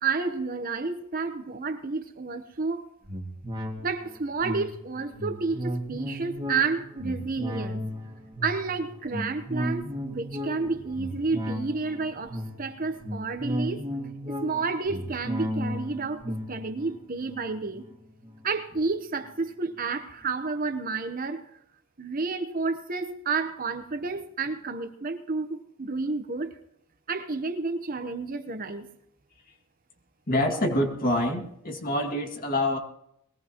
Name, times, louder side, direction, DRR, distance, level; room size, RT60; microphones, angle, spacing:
voice 1, 0.0-2.8 3.8-7.8 8.4-13.9 14.2-17.8 18.4-21.4 22.0-26.6 27.1-28.9, right 4 dB, 40° right, 7 dB, 1.0 m, -30 dB
sound 1, 3.1-18.8 19.2-19.3, equal, 20° right, 2.1 m, -35 dB
voice 2, 30.3-32.8, left 1 dB, 40° left, 3 dB, 2.1 m, -26 dB
21.0 x 18.0 x 3.0 m, 0.77 s
head